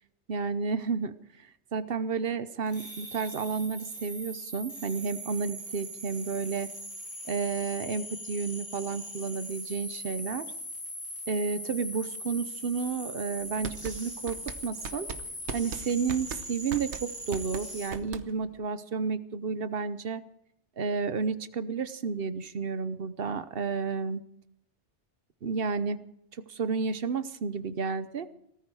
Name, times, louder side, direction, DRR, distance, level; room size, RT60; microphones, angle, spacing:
voice 1, 0.3-1.2 1.7-6.7 7.3-10.4 11.3-15.1 15.5-20.2 20.8-24.2 25.4-26.0 26.5-28.3, right 5 dB, 55° right, 13 dB, 1.1 m, -31 dB
sound 1, 2.7-17.9, equal, 20° left, 7.0 m, -41 dB
sound 2, 13.4-18.6, right 6 dB, 80° right, 1.3 m, -39 dB
18.0 x 14.5 x 4.9 m, 0.76 s
omnidirectional pair, 1.2 m